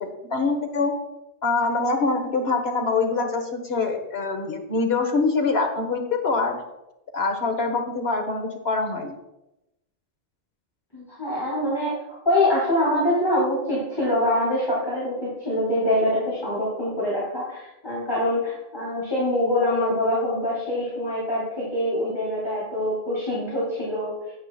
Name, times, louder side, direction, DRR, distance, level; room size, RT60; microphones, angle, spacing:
voice 1, 0.0-0.9 1.4-6.6 7.1-9.2, left 3 dB, 75° left, 4 dB, 1.4 m, -24 dB
voice 2, 10.9-11.9 12.2-24.1, left 1 dB, 25° left, -7 dB, 2.5 m, -24 dB
9.4 x 8.7 x 2.3 m, 0.92 s
omnidirectional pair, 1.1 m